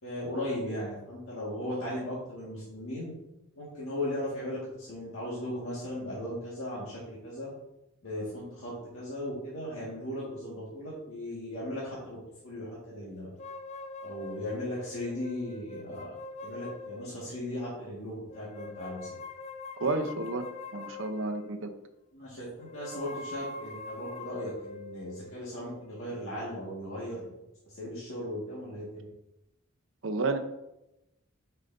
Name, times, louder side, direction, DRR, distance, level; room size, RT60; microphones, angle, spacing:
voice 1, 0.0-3.1 3.6-7.5 8.0-12.2 12.4-13.3 14.0-16.1 16.4-19.2 22.1-27.3 27.6-29.1, left 1 dB, 70° left, -7 dB, 1.9 m, -37 dB
sound 1, 13.4-17.6 18.3-21.7 22.6-27.0, left 3 dB, 30° left, 0.4 m, -44 dB
voice 2, 19.8-20.5 20.7-21.7 30.0-30.4, right 3 dB, 65° right, 7 dB, 0.7 m, -30 dB
8.8 x 5.5 x 2.7 m, 0.90 s
head